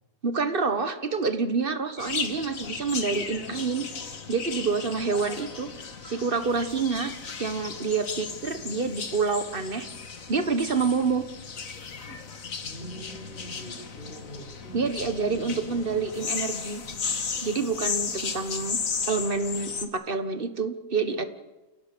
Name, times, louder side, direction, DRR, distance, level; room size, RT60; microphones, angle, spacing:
voice 1, 0.2-5.7 6.0-7.1 7.4-9.9 10.3-11.2 14.7-16.8 17.4-18.8 19.1-21.2, right 4 dB, 35° right, 9 dB, 1.5 m, -27 dB
sound 1, 2.0-19.9, left 5 dB, 55° left, 1.9 m, -35 dB
voice 2, 12.6-15.8, right 1 dB, 35° left, -2 dB, 4.5 m, -43 dB
29.0 x 17.5 x 6.8 m, 1.1 s
omnidirectional pair, 1.7 m